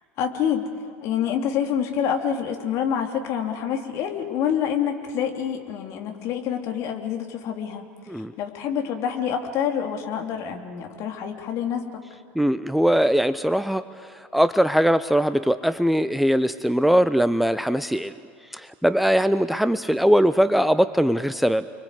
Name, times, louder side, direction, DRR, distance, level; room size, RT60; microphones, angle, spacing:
voice 1, 0.2-0.7 1.0-7.8 8.4-12.0, left 8 dB, 50° left, 3 dB, 3.2 m, -27 dB
voice 2, 12.3-18.1 18.5-21.6, equal, ahead, 13 dB, 0.7 m, -21 dB
30.0 x 23.0 x 8.2 m, 2.1 s
figure-of-eight pair, 75°, 6 cm